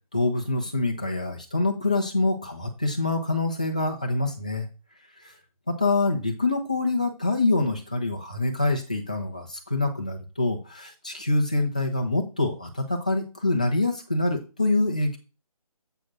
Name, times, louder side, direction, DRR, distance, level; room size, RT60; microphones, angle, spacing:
voice 1, 0.1-4.7 5.2-5.3 5.7-15.2, left 2 dB, 10° left, 2 dB, 0.7 m, -25 dB
7.5 x 6.8 x 6.1 m, 0.31 s
figure-of-eight pair, 175°, 19 cm